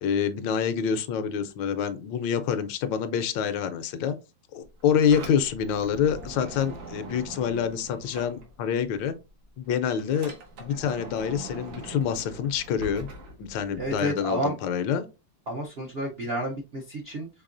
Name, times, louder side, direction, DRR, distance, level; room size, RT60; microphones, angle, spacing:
voice 1, 0.0-4.2 4.5-9.1 9.6-10.3 10.6-13.1 13.4-15.0, left 7 dB, 75° left, 1.3 m, -27 dB
Sliding door, 4.6-9.0 9.3-14.0, right 2 dB, 85° right, 1.9 m, -42 dB
voice 2, 13.8-14.6 15.5-17.3, right 1 dB, 65° right, 0.6 m, -30 dB
5.3 x 3.5 x 2.5 m
omnidirectional pair, 2.1 m